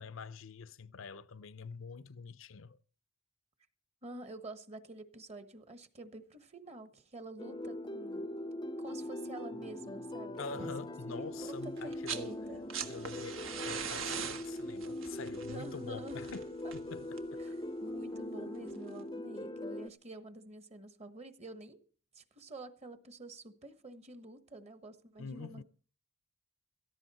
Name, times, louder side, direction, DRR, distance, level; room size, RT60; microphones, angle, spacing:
voice 1, 0.0-2.8 10.4-12.3 12.8-16.4 16.7-17.4 25.2-25.6, left 4 dB, 70° left, 0.6 m, -46 dB
voice 2, 4.0-8.3 8.8-10.7 11.1-11.3 11.6-12.6 15.5-16.3 16.6-16.7 17.4-17.5 17.8-21.8 22.1-25.6, right 2 dB, 30° right, 1.3 m, -48 dB
sound 1, 7.4-19.9, left 1 dB, 20° left, 0.6 m, -41 dB
sound 2, 9.5-12.5, equal, 55° right, 3.4 m, -56 dB
sound 3, 11.8-12.3 12.5-17.4 18.7-18.8, right 7 dB, 70° right, 1.5 m, -41 dB
17.0 x 14.0 x 4.2 m
head